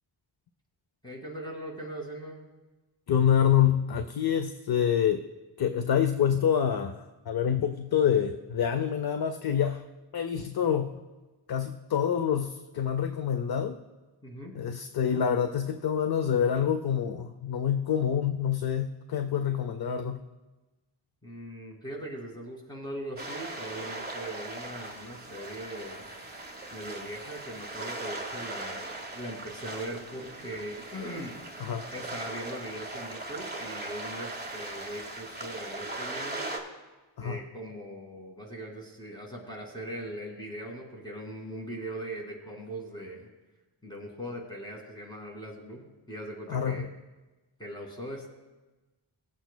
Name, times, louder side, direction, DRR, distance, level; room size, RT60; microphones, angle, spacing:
voice 1, 1.0-2.4 14.2-14.5 21.2-26.3 26.7-31.4 31.9-36.4 37.2-43.3 43.8-46.9 47.6-48.3, right 1 dB, 10° left, -1 dB, 2.1 m, -40 dB
voice 2, 3.1-5.3 5.6-9.8 10.1-11.0 11.5-13.8 14.6-20.2 31.6-31.9 37.2-37.4 46.5-46.9, left 8 dB, 50° left, 9 dB, 0.5 m, -27 dB
sound 1, 23.2-36.6, right 2 dB, 20° right, 1.3 m, -39 dB
18.5 x 8.0 x 2.2 m, 1.2 s
wide cardioid pair, 90°, 49 cm